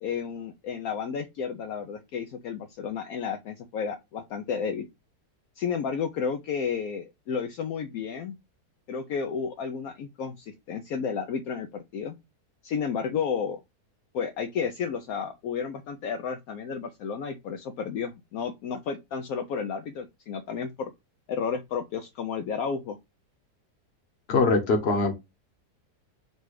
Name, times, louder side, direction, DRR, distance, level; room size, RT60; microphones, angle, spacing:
voice 1, 0.0-4.8 5.6-8.4 8.9-12.2 12.6-13.6 14.1-20.9 21.3-23.0, left 6 dB, 70° left, 1.0 m, -32 dB
voice 2, 24.3-25.2, left 3 dB, 45° left, 1.1 m, -22 dB
4.1 x 2.3 x 4.6 m
omnidirectional pair, 1.7 m